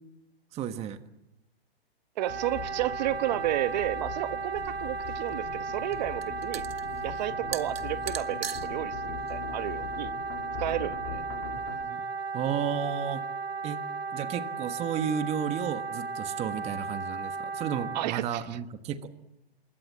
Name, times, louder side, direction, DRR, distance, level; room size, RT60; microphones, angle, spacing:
voice 1, 0.5-1.1 11.7-12.0 12.3-13.2 13.6-13.8 14.1-19.1, right 8 dB, 20° right, 1.4 m, -33 dB
voice 2, 2.2-6.6 7.0-10.1 10.6-11.2 17.9-18.4, right 14 dB, 45° right, 1.2 m, -32 dB
Wind instrument woodwind instrument, 2.2-18.1, right 4 dB, 90° right, 3.8 m, -35 dB
sound 1, 2.3-11.8, left 7 dB, 40° left, 3.7 m, -43 dB
sound 2, 4.6-10.7, right 9 dB, 70° right, 1.6 m, -42 dB
27.0 x 23.5 x 7.6 m
hypercardioid pair, 140°, 31 cm